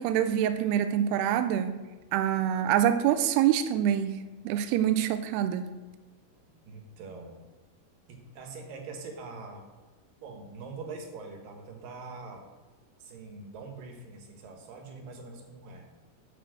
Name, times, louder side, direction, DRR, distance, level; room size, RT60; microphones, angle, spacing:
voice 1, 0.0-1.8 2.1-4.2 4.4-5.7, right 10 dB, 85° right, 10 dB, 2.6 m, -25 dB
voice 2, 6.5-7.4 8.1-9.7 10.2-12.5 13.0-15.8, right 4 dB, 65° right, 3 dB, 2.9 m, -43 dB
10.5 x 6.0 x 7.6 m, 1.3 s
omnidirectional pair, 4.6 m